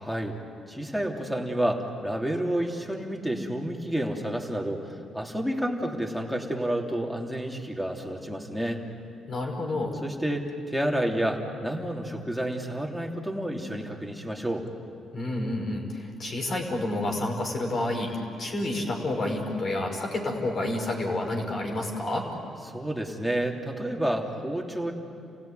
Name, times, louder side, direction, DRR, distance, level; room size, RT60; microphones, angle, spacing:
voice 1, 0.0-0.4 0.7-8.8 10.0-14.7 22.7-24.9, right 1 dB, ahead, -1 dB, 3.1 m, -30 dB
voice 2, 9.3-9.9 15.1-18.1 18.4-22.3, left 1 dB, 45° left, 1 dB, 5.6 m, -29 dB
29.5 x 17.0 x 9.4 m, 2.5 s
cardioid pair, 90°, 0 cm